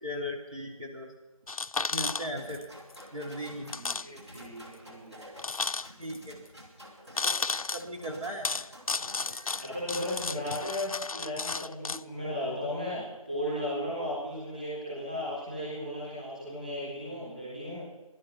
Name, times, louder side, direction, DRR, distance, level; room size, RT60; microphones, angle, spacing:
voice 1, 0.0-1.1 1.9-2.7 3.1-3.7 6.0-6.4 7.2-7.3 7.7-8.5, equal, 70° right, 0 dB, 2.6 m, -37 dB
sound 1, 1.5-2.6 2.9-3.0 3.7-4.1 4.3-4.4 5.4-6.2 7.2-7.8 8.4-12.0, left 4 dB, 75° left, 0.4 m, -33 dB
sound 2, 2.0-10.7, equal, 50° right, 2.7 m, -50 dB
voice 2, 3.7-5.2 9.6-17.8, left 1 dB, 15° right, -8 dB, 3.8 m, -35 dB
18.0 x 12.0 x 5.6 m, 1.2 s
figure-of-eight pair, 180°, 18 cm